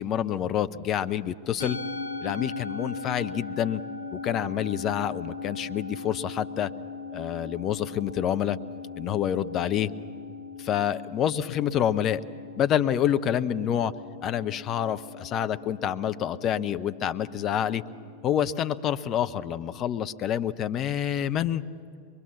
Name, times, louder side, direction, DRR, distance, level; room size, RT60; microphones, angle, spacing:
voice 1, 0.0-1.8 2.2-3.8 4.1-6.7 7.1-8.6 9.0-9.9 10.6-12.2 12.6-13.9 14.2-17.8 18.2-21.6, left 10 dB, 30° left, 13 dB, 0.6 m, -27 dB
Musical instrument, 1.6-20.1, left 4 dB, 75° left, 0.7 m, -40 dB
22.5 x 22.5 x 7.1 m, 2.4 s
figure-of-eight pair, 90°, 0 cm